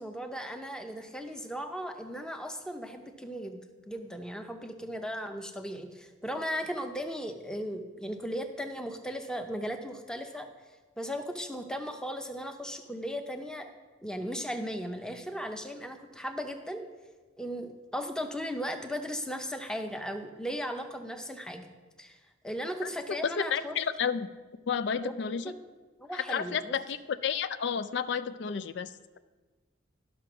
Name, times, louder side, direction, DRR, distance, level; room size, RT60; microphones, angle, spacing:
voice 1, 0.0-3.6 3.9-10.5 11.0-13.7 14.0-16.9 17.4-21.6 22.0-22.2 22.4-23.8 25.0-25.1 25.4-25.5 26.0-26.8, equal, 5° left, 5 dB, 0.7 m, -37 dB
voice 2, 22.8-24.3 24.7-25.4 26.1-28.9, left 7 dB, 60° left, 13 dB, 0.4 m, -31 dB
12.0 x 5.8 x 6.0 m, 1.3 s
head